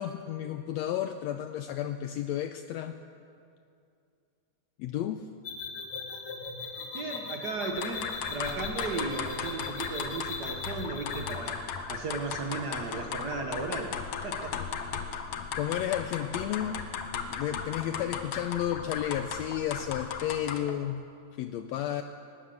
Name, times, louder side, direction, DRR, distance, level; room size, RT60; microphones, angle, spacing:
voice 1, 0.0-3.0 4.8-5.3 15.5-16.8 17.3-21.0 21.4-22.0, left 11 dB, 80° left, 8 dB, 1.6 m, -32 dB
sound 1, 5.5-11.5, left 4 dB, 45° left, 2.7 m, -39 dB
voice 2, 6.9-11.6 11.9-13.9 14.2-14.6, right 3 dB, 55° right, 3 dB, 1.1 m, -35 dB
sound 2, 7.6-20.8, left 6 dB, 60° left, 1.8 m, -36 dB
19.5 x 19.0 x 7.8 m, 2.4 s
omnidirectional pair, 3.7 m